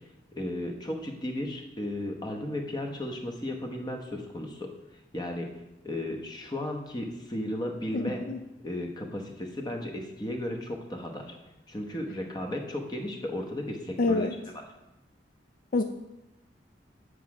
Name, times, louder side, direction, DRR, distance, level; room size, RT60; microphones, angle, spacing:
voice 1, 0.3-4.7 5.1-5.5 5.8-8.2 8.6-11.4 11.7-14.4, left 1 dB, 25° left, 3 dB, 0.8 m, -34 dB
voice 2, 7.9-8.4 14.0-14.3 15.7-15.8, left 3 dB, 50° left, 6 dB, 0.4 m, -26 dB
7.9 x 4.7 x 6.1 m, 0.97 s
head